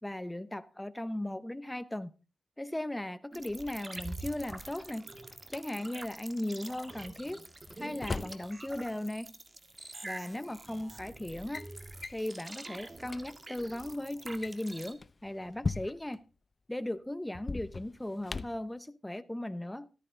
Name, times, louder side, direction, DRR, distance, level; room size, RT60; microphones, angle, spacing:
voice 1, 0.0-2.1 2.6-5.1 5.5-7.4 7.8-9.4 10.0-11.7 12.1-16.2 16.7-19.9, left 1 dB, 10° left, 0.9 m, -37 dB
sound 1, 3.3-14.9, right 2 dB, 25° right, 1.6 m, -46 dB
Drawer open or close, 4.3-5.6 7.3-8.5 9.7-9.8 10.7-10.9 11.2-11.7 12.0-12.3 12.8-12.9 13.0-13.2 14.2-16.2 17.3-18.7, left 3 dB, 35° left, 0.6 m, -39 dB
14.0 x 13.5 x 3.8 m
wide cardioid pair, 115°, 0 cm